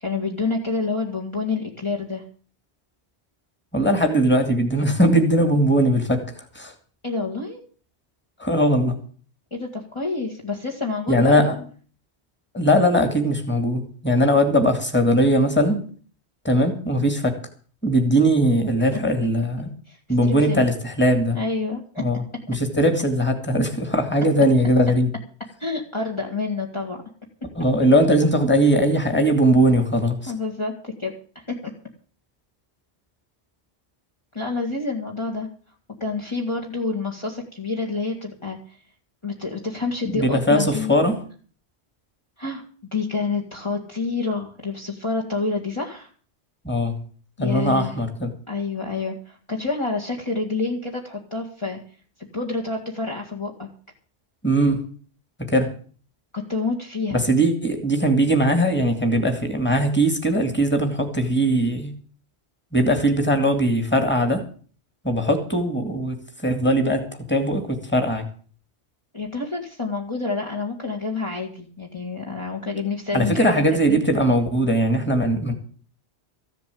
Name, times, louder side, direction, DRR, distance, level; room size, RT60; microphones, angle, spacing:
voice 1, 0.0-2.2 7.0-7.6 9.5-11.5 18.9-19.0 19.9-20.0 20.2-20.7 21.3-22.0 25.6-27.0 30.3-31.6 34.3-35.5 36.0-38.8 39.2-41.0 42.4-46.1 47.4-47.9 48.5-51.8 52.3-53.7 56.3-57.2 69.1-74.0, left 3 dB, 25° left, -2 dB, 2.0 m, -28 dB
voice 2, 3.7-6.7 8.4-9.0 11.1-11.6 12.5-15.8 16.4-17.4 17.8-19.7 20.1-21.4 22.0-22.2 22.5-25.1 27.6-30.3 40.1-41.2 46.6-47.0 47.4-48.3 54.4-54.8 55.5-55.7 57.1-61.9 62.7-64.4 65.0-68.2 73.1-75.5, equal, 10° left, 6 dB, 2.4 m, -20 dB
15.0 x 7.5 x 8.5 m, 0.42 s
omnidirectional pair, 1.2 m